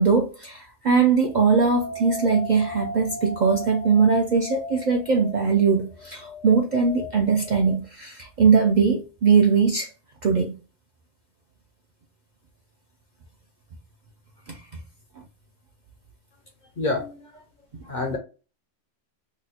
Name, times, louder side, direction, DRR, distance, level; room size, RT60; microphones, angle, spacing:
voice 1, 0.0-9.9 10.2-10.5 14.5-14.6, right 5 dB, 60° right, 0.4 m, -21 dB
sound 1, 1.3-7.8, left 3 dB, 80° left, 0.9 m, -37 dB
voice 2, 16.8-17.4 17.8-18.2, left 2 dB, 55° left, 0.5 m, -28 dB
2.9 x 2.0 x 4.0 m
omnidirectional pair, 1.2 m